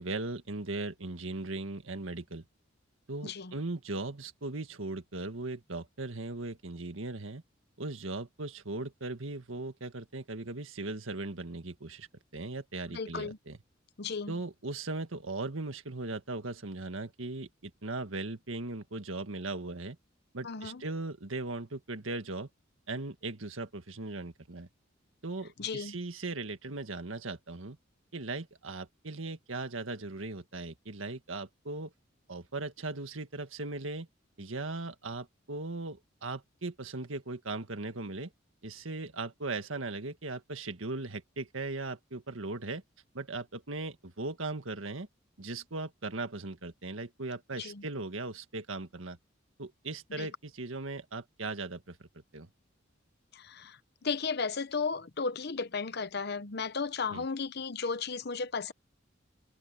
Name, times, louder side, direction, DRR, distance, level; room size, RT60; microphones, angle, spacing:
voice 1, 0.0-2.4 3.1-7.4 7.8-12.1 12.3-13.6 14.3-20.0 20.3-22.5 22.9-24.7 25.2-27.8 28.1-31.9 32.3-34.1 34.4-38.3 38.6-42.8 43.1-45.1 45.4-49.2 49.6-52.0 52.3-52.5 57.1-57.3, right 2 dB, 90° right, 1.8 m, -38 dB
voice 2, 3.2-3.5 12.9-13.4 14.0-14.4 20.4-20.8 25.6-26.0 47.6-47.8 50.2-50.3 53.3-58.7, left 5 dB, 55° left, 0.9 m, -35 dB
head